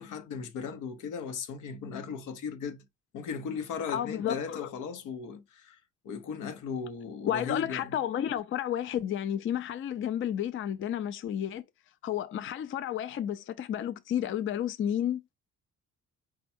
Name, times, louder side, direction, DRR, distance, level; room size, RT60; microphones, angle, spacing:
voice 1, 0.0-2.8 3.1-5.8 6.0-7.9, left 6 dB, 85° left, 0.8 m, -37 dB
voice 2, 3.9-4.7 7.3-11.6 12.0-15.2, left 10 dB, 45° left, 0.4 m, -31 dB
4.5 x 2.2 x 4.2 m
cardioid pair, 90°, 30 cm